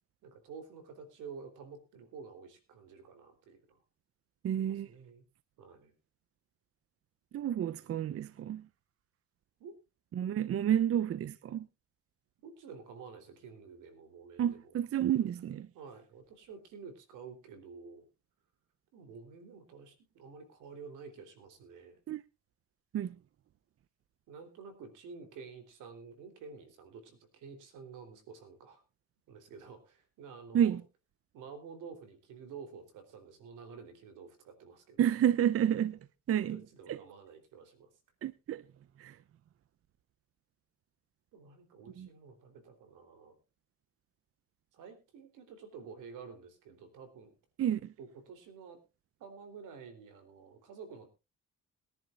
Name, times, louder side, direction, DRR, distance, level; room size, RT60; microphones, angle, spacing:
voice 1, 0.2-3.8 4.5-5.2 5.6-5.9 9.6-9.8 12.4-14.7 15.7-18.0 18.9-22.0 24.3-28.8 29.3-30.8 31.3-35.1 36.3-37.9 41.3-43.4 44.7-47.3 48.0-48.8 49.2-51.1, right 5 dB, 90° right, 3.4 m, -50 dB
voice 2, 4.4-4.9 7.3-8.7 10.1-11.7 14.4-15.7 22.1-22.2 22.9-23.2 30.5-30.8 35.0-36.0 36.3-36.6 36.9-37.0 38.2-38.6 39.0-39.2 42.0-42.1 47.6-47.9, right 10 dB, 50° right, 0.6 m, -30 dB
21.5 x 10.5 x 2.4 m
cardioid pair, 90°, 30 cm